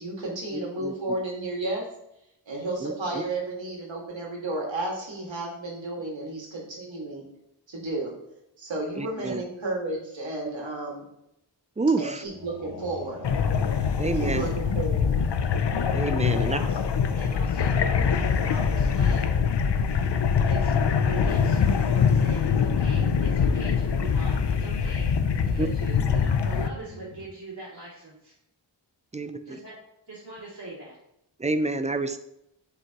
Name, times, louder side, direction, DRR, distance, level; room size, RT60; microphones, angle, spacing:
voice 1, 0.0-1.8 2.5-7.2 7.7-8.1 8.6-11.1 12.0-13.2 14.2-15.2, right 2 dB, 85° right, -2 dB, 2.1 m, -32 dB
voice 2, 0.5-0.9 2.8-3.2 9.0-9.4 11.8-12.2 14.0-14.5 15.9-16.6 25.6-25.7 29.1-29.3 31.4-32.2, right 3 dB, 15° right, 10 dB, 0.5 m, -28 dB
sound 1, 12.2-27.2, left 3 dB, 85° left, 1.5 m, -41 dB
sound 2, 13.2-26.7, left 6 dB, 70° left, 0.6 m, -24 dB
voice 3, 16.3-16.8 17.1-19.3 20.5-25.1 25.4-28.3 29.5-29.7 30.1-31.0, right 2 dB, 50° right, -11 dB, 2.7 m, -41 dB
7.8 x 5.4 x 3.0 m, 0.81 s
wide cardioid pair, 80°, 44 cm